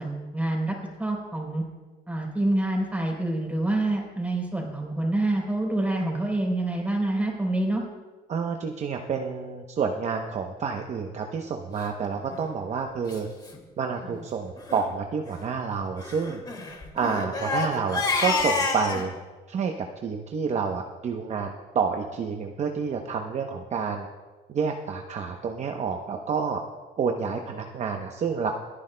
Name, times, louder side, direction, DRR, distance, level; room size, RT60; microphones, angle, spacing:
voice 1, 0.0-1.6 2.1-7.8, right 1 dB, 10° right, 0 dB, 3.7 m, -27 dB
voice 2, 8.3-13.3 13.8-16.4 16.9-19.1 19.5-19.7 20.0-24.1 24.5-26.6 27.0-28.5, right 5 dB, 40° right, 3 dB, 0.8 m, -29 dB
Crying sobbing, 12.2-12.4 13.1-13.2 13.5-13.6 13.9-14.1 14.6-14.8 16.0-19.1, left 3 dB, 25° left, 2.2 m, -29 dB
28.0 x 9.8 x 2.2 m, 1.3 s
cardioid pair, 110°, 17 cm